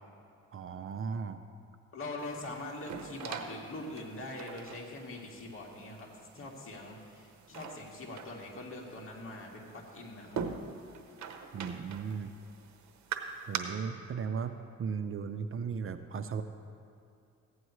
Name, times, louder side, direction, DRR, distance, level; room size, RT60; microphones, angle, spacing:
voice 1, 0.5-1.4 11.5-12.3 13.5-16.4, right 6 dB, 45° right, 9 dB, 0.5 m, -36 dB
voice 2, 1.9-6.1 6.3-10.4, left 2 dB, 45° left, -1 dB, 2.0 m, -43 dB
sound 1, 2.2-13.6, right 6 dB, 65° right, 0.9 m, -44 dB
15.5 x 9.5 x 3.2 m, 2.6 s
cardioid pair, 90°, 30 cm